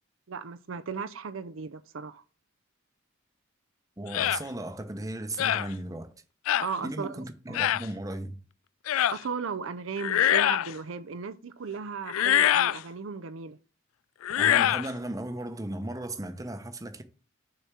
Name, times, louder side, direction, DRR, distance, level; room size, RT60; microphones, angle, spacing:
voice 1, 0.3-2.2 6.6-7.6 9.1-13.6, right 5 dB, 70° right, 0.5 m, -36 dB
voice 2, 4.0-6.1 6.8-8.4 14.4-17.0, right 1 dB, 15° right, 0.8 m, -36 dB
sound 1, 4.1-4.4 5.4-5.7 6.5-6.7 7.5-7.8 8.9-9.2 10.0-10.7 12.1-12.8 14.2-14.9, left 11 dB, 85° left, 0.3 m, -24 dB
6.7 x 4.3 x 6.2 m
head